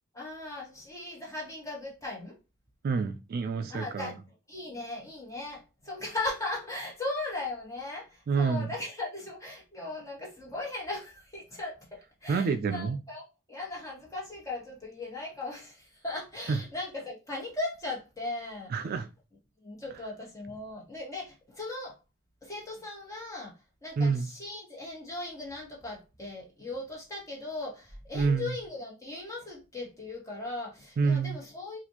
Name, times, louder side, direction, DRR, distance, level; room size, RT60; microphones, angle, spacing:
voice 1, 0.1-2.4 3.7-4.2 4.5-18.7 19.6-22.0 22.4-23.5 23.8-31.8, left 2 dB, 15° left, 1.4 m, -38 dB
voice 2, 2.8-4.2 8.3-8.7 12.3-13.0 16.5-16.6 18.7-19.1 24.0-24.3 28.1-28.5 31.0-31.4, right 5 dB, 50° right, 0.3 m, -28 dB
4.2 x 2.5 x 2.8 m
head